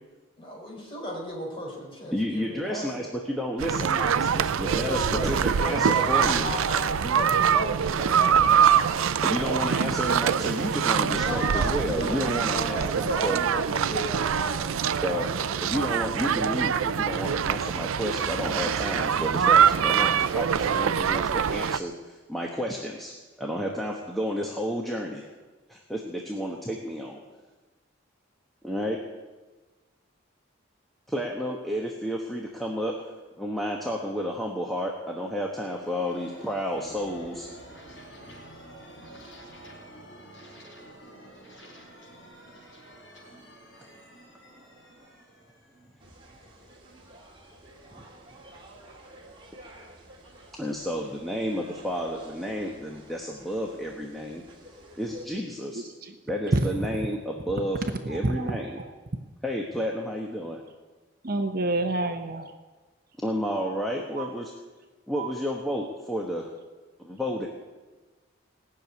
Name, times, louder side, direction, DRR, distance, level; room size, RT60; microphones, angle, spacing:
voice 1, 0.4-3.1 4.6-9.5 10.1-10.5 10.9-15.9, equal, 25° left, -2 dB, 4.4 m, -35 dB
voice 2, 2.1-6.5 9.2-13.6 15.0-15.3 15.6-23.1 23.4-25.2 25.7-27.2 28.6-29.0 31.1-37.5 48.0-48.1 50.6-54.4 55.0-55.8 56.3-58.8 59.4-60.6 63.2-64.5 65.1-66.5 67.0-67.5, equal, ahead, -1 dB, 1.1 m, -31 dB
sound 1, 3.6-21.8, right 7 dB, 80° right, 0.5 m, -24 dB
sound 2, 35.1-46.7, right 1 dB, 80° left, 3.9 m, -49 dB
sound 3, 46.0-55.3, right 1 dB, 25° right, 2.1 m, -50 dB
voice 3, 58.1-58.5 58.8-58.9 61.2-62.5 64.2-64.3 65.2-65.3, right 2 dB, 45° right, 6 dB, 0.8 m, -27 dB
18.0 x 6.9 x 9.4 m, 1.3 s
head